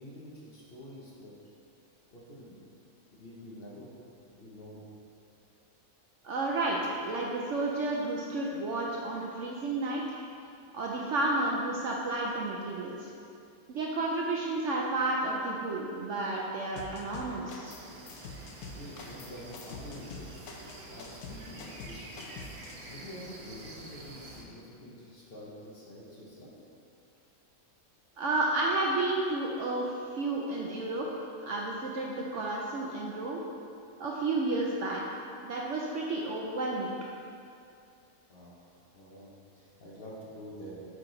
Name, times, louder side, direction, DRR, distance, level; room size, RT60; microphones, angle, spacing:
voice 1, 0.0-1.3 2.1-2.6 3.1-3.9 4.3-4.8 18.7-20.3 20.9-22.3 22.8-26.5 38.3-38.6 38.9-40.9, equal, 45° left, -5 dB, 1.0 m, -47 dB
voice 2, 6.2-6.8 7.0-10.2 10.7-13.1 13.7-17.8 28.2-33.4 34.0-36.9, right 2 dB, 65° right, -2 dB, 0.8 m, -31 dB
sound 1, 16.8-17.8 18.1-22.8, left 4 dB, 75° left, 1.1 m, -45 dB
sound 2, 17.6-24.4, right 1 dB, 50° right, 1.1 m, -48 dB
5.9 x 4.8 x 3.8 m, 2.5 s
omnidirectional pair, 1.6 m